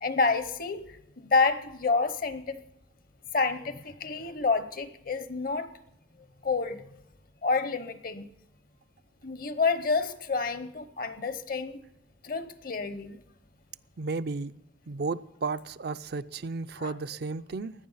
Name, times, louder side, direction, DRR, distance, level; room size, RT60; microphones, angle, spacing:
voice 1, 0.0-2.6 3.3-5.7 6.4-6.9 7.4-8.3 9.2-11.8 12.2-13.2 16.8-16.9, left 4 dB, 50° left, 12 dB, 0.9 m, -29 dB
voice 2, 14.0-14.5 14.9-17.7, right 4 dB, 60° right, 12 dB, 0.5 m, -33 dB
17.0 x 11.0 x 5.6 m, 0.83 s
head